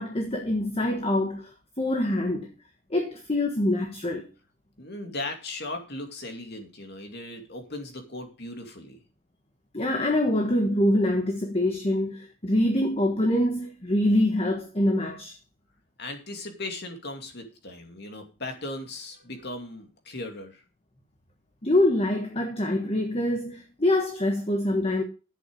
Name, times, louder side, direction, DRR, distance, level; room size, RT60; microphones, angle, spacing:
voice 1, 0.0-1.5 1.8-2.5 2.9-4.3 9.7-15.3 21.6-25.0, left 1 dB, 30° left, 1.3 m, -25 dB
voice 2, 4.8-9.0 16.0-20.6, left 2 dB, 50° left, 2.5 m, -37 dB
11.0 x 8.4 x 5.3 m
head